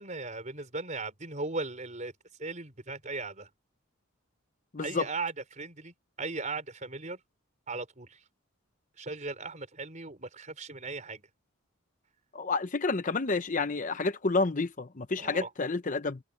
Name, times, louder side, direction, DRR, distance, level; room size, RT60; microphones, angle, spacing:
voice 1, 0.0-2.1 2.4-3.5 4.8-7.2 7.7-8.2 9.0-11.2 15.2-15.5, right 3 dB, 35° right, 4.5 m, -37 dB
voice 2, 4.7-5.1 12.3-16.2, left 3 dB, 40° left, 0.8 m, -29 dB
head